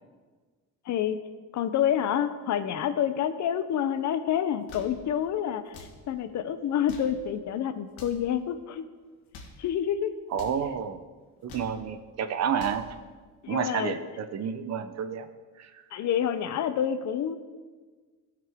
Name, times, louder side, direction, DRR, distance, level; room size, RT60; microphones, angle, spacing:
voice 1, 0.9-1.2 1.5-8.8 9.6-10.1 13.4-14.0 15.9-17.4, left 9 dB, 55° left, 11 dB, 0.6 m, -28 dB
sound 1, 4.5-5.0 5.6-6.0 6.7-7.2 7.9-8.3 9.1-9.6 10.3-10.6 11.3-11.8 12.4-12.9, left 3 dB, 90° left, 1.8 m, -47 dB
voice 2, 10.3-11.0 11.4-12.9 13.5-15.3 15.6-15.8, right 7 dB, 50° right, 10 dB, 0.6 m, -30 dB
16.0 x 6.0 x 3.5 m, 1.4 s
cardioid pair, 145°, 35 cm